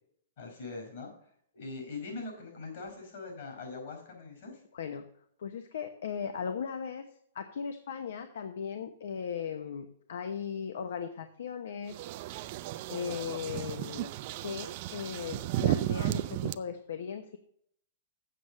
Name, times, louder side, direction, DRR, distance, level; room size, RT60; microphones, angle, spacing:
voice 1, 0.4-1.1 1.5-4.6, left 3 dB, 55° left, 2 dB, 4.7 m, -42 dB
voice 2, 4.7-5.1 5.4-7.0 7.3-12.2 12.9-14.1 14.4-17.4, left 7 dB, 70° left, 8 dB, 0.9 m, -37 dB
sound 1, 11.9-16.5, right 15 dB, 40° right, 0.4 m, -34 dB
7.7 x 6.7 x 7.5 m, 0.67 s
hypercardioid pair, 155°, 0 cm